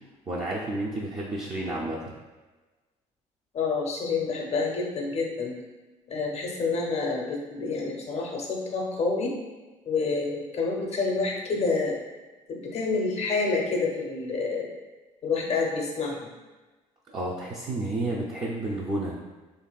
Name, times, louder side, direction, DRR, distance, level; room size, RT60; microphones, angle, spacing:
voice 1, 0.3-2.1 17.1-19.2, right 2 dB, 30° right, -5 dB, 0.5 m, -31 dB
voice 2, 3.5-5.6 6.1-9.4 9.9-12.0 12.5-14.7 15.2-16.3, left 4 dB, 45° left, 0 dB, 0.6 m, -28 dB
2.8 x 2.5 x 2.2 m, 1.2 s
hypercardioid pair, 65°, 15 cm